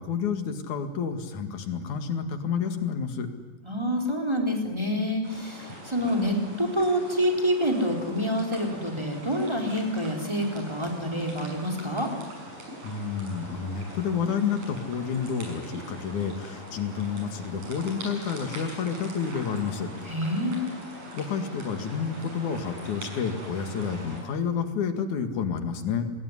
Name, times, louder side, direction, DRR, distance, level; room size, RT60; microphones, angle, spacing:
voice 1, 0.0-3.3 12.8-19.9 21.1-26.0, left 6 dB, 60° left, 7 dB, 3.4 m, -30 dB
voice 2, 3.6-12.1 20.1-20.7, equal, 5° right, 2 dB, 3.9 m, -27 dB
sound 1, 5.2-24.2, right 1 dB, 55° right, 8.1 m, -42 dB
26.5 x 20.0 x 10.0 m, 1.2 s
omnidirectional pair, 4.0 m